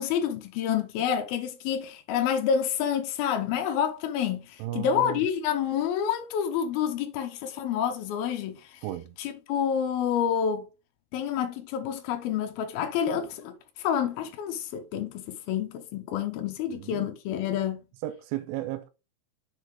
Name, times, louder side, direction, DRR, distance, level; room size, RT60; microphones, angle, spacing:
voice 1, 0.0-8.8 9.2-10.7 11.1-17.8, left 8 dB, 90° left, 2.1 m, -28 dB
voice 2, 4.6-5.2 8.8-9.2 16.7-17.1 18.0-18.9, right 15 dB, 85° right, 3.2 m, -34 dB
7.6 x 4.9 x 3.7 m
omnidirectional pair, 5.6 m